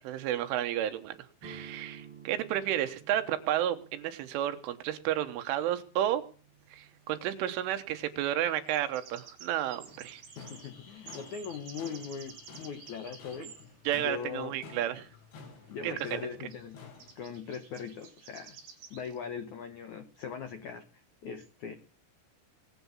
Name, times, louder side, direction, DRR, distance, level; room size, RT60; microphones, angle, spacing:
voice 1, 0.0-6.2 6.7-10.2 13.9-15.1 15.8-16.2, right 12 dB, 80° right, 9 dB, 3.7 m, -32 dB
sound 1, 1.4-9.2, right 6 dB, 25° right, 5.3 m, -54 dB
sound 2, 6.6-6.7 8.5-13.7 15.4-15.5 15.7-15.8 16.0-16.2 16.5-16.7 17.0-19.2, right 6 dB, 60° right, 5.1 m, -52 dB
sound 3, 9.9-17.1, left 5 dB, 60° left, 4.7 m, -52 dB
voice 2, 10.4-13.5 13.9-14.6 15.7-16.9 17.1-18.6 18.9-21.7, left 6 dB, 75° left, 8 dB, 1.7 m, -40 dB
22.5 x 8.3 x 7.3 m, 0.39 s
omnidirectional pair, 5.6 m